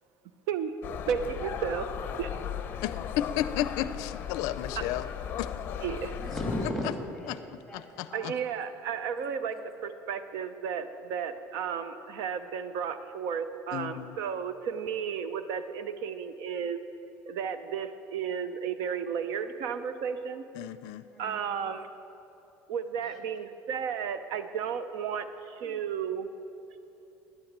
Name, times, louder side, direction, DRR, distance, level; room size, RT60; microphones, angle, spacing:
sound 1, 0.8-6.7, left 8 dB, 35° left, 0.6 m, -36 dB
voice 1, 1.1-1.9 2.2-2.4 5.8-6.1 8.1-9.5 9.8-16.8 17.3-20.5 21.2-21.9 22.7-26.3, right 7 dB, 70° right, 11 dB, 0.6 m, -33 dB
voice 2, 2.8-5.1 5.4-5.5 7.3-7.4 7.7-8.3 13.7-14.1 20.6-21.0, left 12 dB, 75° left, 14 dB, 0.4 m, -33 dB
voice 3, 6.2-8.3 9.5-9.6 21.1-21.6 23.0-23.2, left 1 dB, ahead, 0 dB, 2.1 m, -37 dB
12.0 x 9.8 x 7.3 m, 2.9 s
cardioid pair, 180°, 6 cm